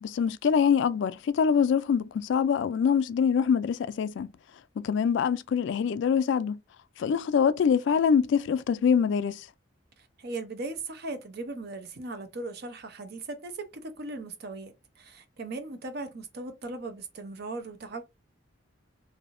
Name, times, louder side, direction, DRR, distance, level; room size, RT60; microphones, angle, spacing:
voice 1, 0.0-4.3 4.8-6.6 7.0-9.5, left 7 dB, 65° left, 0.3 m, -24 dB
voice 2, 10.2-18.0, right 2 dB, 55° right, 0.7 m, -38 dB
3.3 x 2.7 x 2.5 m
head